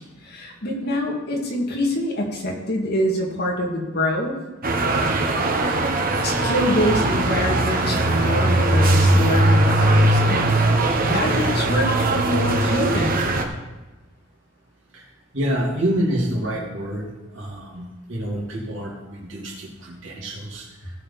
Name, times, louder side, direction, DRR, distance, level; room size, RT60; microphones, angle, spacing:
voice 1, 0.2-4.3 6.2-10.6 11.0-13.2, equal, 55° left, -1 dB, 2.4 m, -25 dB
sound 1, 4.6-13.4, right 1 dB, 50° right, 1.2 m, -20 dB
voice 2, 15.3-20.7, equal, 70° right, -3 dB, 3.1 m, -27 dB
17.0 x 6.7 x 4.2 m, 1.1 s
head